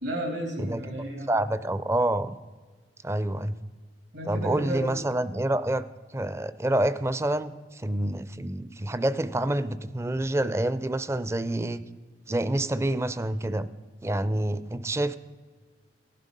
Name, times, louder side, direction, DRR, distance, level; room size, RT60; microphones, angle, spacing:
voice 1, 0.0-1.3 4.1-4.9, right 1 dB, 80° right, 2 dB, 3.1 m, -32 dB
voice 2, 1.3-2.3 3.0-3.5 4.3-5.8 6.1-11.8 12.3-13.7 14.0-15.2, right 1 dB, 15° right, 15 dB, 0.4 m, -27 dB
15.5 x 7.5 x 5.3 m, 1.4 s
head